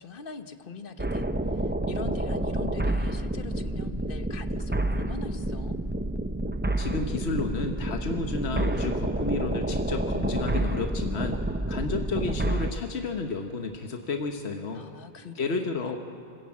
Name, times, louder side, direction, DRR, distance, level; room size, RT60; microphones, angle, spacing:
voice 1, 0.0-5.8 14.7-16.0, left 5 dB, 60° left, 9 dB, 1.2 m, -43 dB
sound 1, 1.0-12.7, right 1 dB, 10° right, 0.6 m, -29 dB
voice 2, 6.8-11.4 11.7-14.8 15.4-16.0, left 3 dB, 85° left, 4 dB, 1.4 m, -31 dB
25.5 x 14.5 x 8.6 m, 2.5 s
omnidirectional pair, 1.1 m